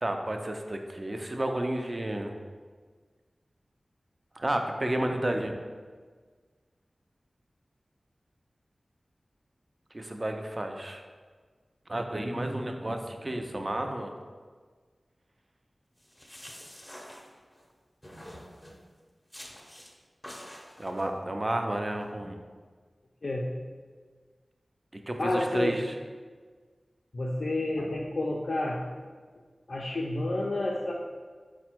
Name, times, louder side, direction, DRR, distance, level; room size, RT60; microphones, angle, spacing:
voice 1, 0.0-2.3 4.4-5.6 9.9-11.0 11.9-14.1 20.8-22.4 24.9-25.9, right 1 dB, 35° right, 4 dB, 0.4 m, -31 dB
sound 1, 16.0-17.7 18.0-18.8 19.3-19.9 20.2-21.1, equal, 15° left, 0.6 m, -47 dB
voice 2, 23.2-23.5 25.2-25.8 27.1-28.8 29.7-30.9, left 1 dB, 60° left, -2 dB, 0.3 m, -30 dB
4.2 x 2.1 x 4.4 m, 1.5 s
wide cardioid pair, 55°, 0 cm